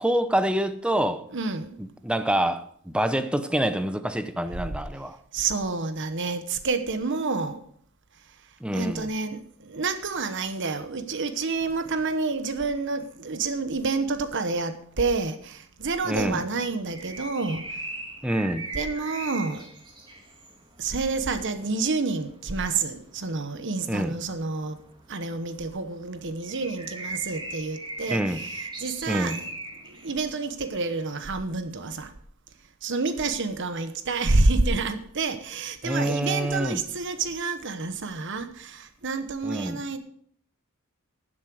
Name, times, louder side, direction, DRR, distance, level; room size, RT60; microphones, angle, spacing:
voice 1, 0.0-1.2 1.8-5.2 8.6-9.1 16.0-16.4 18.2-18.7 23.9-24.2 28.1-28.4 29.1-29.4 35.8-36.8 39.4-39.8, right 1 dB, 5° right, 0.7 m, -26 dB
voice 2, 1.3-1.8 5.3-7.6 8.7-17.6 18.7-19.7 20.8-24.8 25.1-28.2 28.8-29.5 29.9-32.1 32.8-40.0, right 3 dB, 60° right, 1.1 m, -28 dB
sound 1, 16.8-31.2, right 2 dB, 20° right, 2.3 m, -40 dB
11.5 x 7.5 x 6.2 m
head